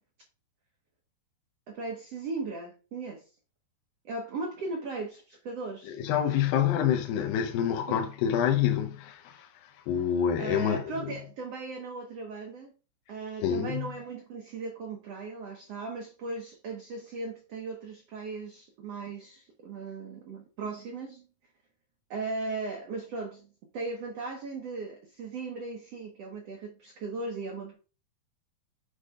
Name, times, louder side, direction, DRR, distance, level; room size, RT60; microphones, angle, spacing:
voice 1, 1.7-3.2 4.0-6.0 7.9-8.0 10.4-12.7 13.1-21.3 22.1-27.7, right 3 dB, 70° right, 1.5 m, -37 dB
voice 2, 5.8-11.1 13.4-13.9, left 9 dB, 75° left, 2.4 m, -27 dB
8.4 x 3.6 x 5.1 m
omnidirectional pair, 4.5 m